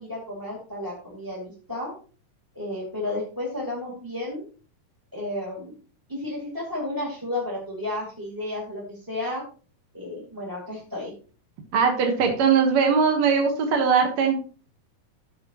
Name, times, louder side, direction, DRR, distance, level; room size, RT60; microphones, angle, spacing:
voice 1, 0.0-1.9 2.5-4.4 5.1-5.7 6.1-9.4 9.9-11.1, left 1 dB, 5° right, -4 dB, 1.7 m, -32 dB
voice 2, 11.7-14.4, right 6 dB, 55° right, 4 dB, 2.2 m, -20 dB
14.0 x 7.8 x 3.0 m, 0.38 s
omnidirectional pair, 4.2 m